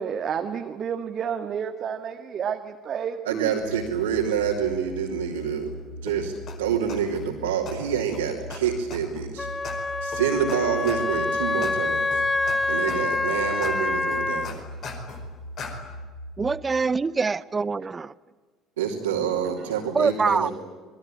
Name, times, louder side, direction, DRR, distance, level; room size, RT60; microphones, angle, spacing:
voice 1, 0.0-3.5, right 7 dB, 40° right, 5 dB, 1.7 m, -30 dB
voice 2, 3.2-5.7 6.0-6.3 6.6-9.5 10.0-12.2 12.7-14.6 18.8-20.5, right 8 dB, 70° right, -3 dB, 3.2 m, -27 dB
sound 1, 3.6-16.6, equal, 80° left, 4.0 m, -40 dB
sound 2, 6.1-6.2 6.5-6.6 6.9-7.2 7.7-7.8 8.1-8.2 8.5-8.6 8.9-9.2 9.6-9.7 10.1-10.2 10.5-10.6 10.9-11.2 11.6-11.7 12.1-12.6 12.9-13.2 13.6-13.7 14.1-15.2 15.6-15.7, left 6 dB, 45° left, 5.0 m, -38 dB
Wind instrument woodwind instrument, 9.4-14.5, left 3 dB, 15° left, 0.9 m, -26 dB
voice 3, 16.4-18.1 19.9-20.5, right 4 dB, 25° right, 21 dB, 0.8 m, -24 dB
27.5 x 21.5 x 9.0 m, 1.4 s
figure-of-eight pair, 60°, 0 cm